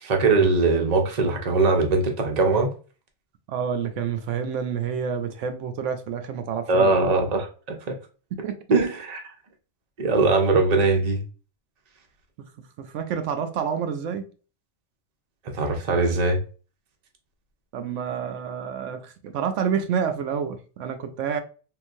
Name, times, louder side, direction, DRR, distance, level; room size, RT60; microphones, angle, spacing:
voice 1, 0.0-2.7 6.7-8.0 8.7-9.2 10.0-11.2 15.5-16.4, right 3 dB, 40° right, 0.7 m, -21 dB
voice 2, 3.5-6.9 8.4-8.5 12.8-14.2 17.7-21.4, right 7 dB, 85° right, 0.9 m, -28 dB
3.7 x 2.5 x 2.5 m
omnidirectional pair, 1.2 m